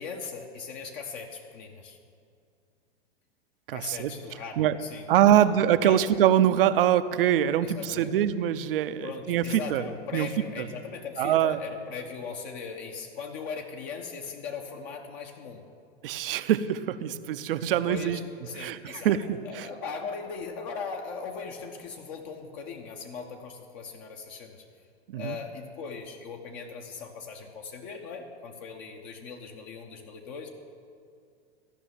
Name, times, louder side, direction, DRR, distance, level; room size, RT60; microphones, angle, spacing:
voice 1, 0.0-2.0 3.7-5.5 5.8-6.0 7.6-8.1 9.0-15.7 17.9-19.2 19.4-24.7 25.1-30.5, left 5 dB, 45° left, 3 dB, 1.2 m, -39 dB
voice 2, 3.7-4.1 4.6-4.8 5.1-9.8 10.1-10.3 10.6-10.7 11.2-11.6 16.0-18.2 18.5-19.7 25.1-25.4, right 10 dB, 60° right, 12 dB, 0.6 m, -24 dB
13.5 x 5.9 x 9.1 m, 2.4 s
figure-of-eight pair, 95°, 32 cm